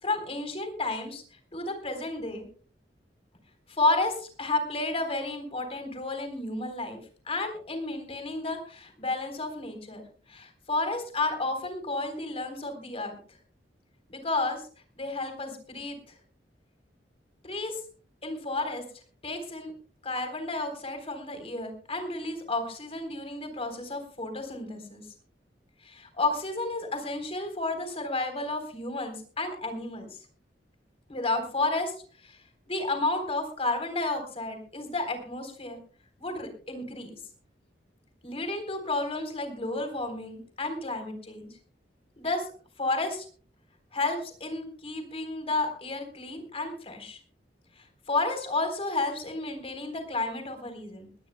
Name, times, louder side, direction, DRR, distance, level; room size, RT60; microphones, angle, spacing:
voice 1, 0.0-1.2 1.5-2.4 3.7-7.0 7.3-10.0 10.3-13.1 14.1-14.7 15.0-16.2 17.4-17.8 18.2-18.8 19.2-19.7 20.0-25.0 25.8-30.2 31.1-31.9 32.2-32.4 32.7-35.8 36.2-37.1 38.2-41.5 42.2-42.5 42.8-43.3 43.9-47.2 47.8-51.1, left 2 dB, 35° left, 6 dB, 3.7 m, -32 dB
21.0 x 17.5 x 2.2 m, 0.40 s
head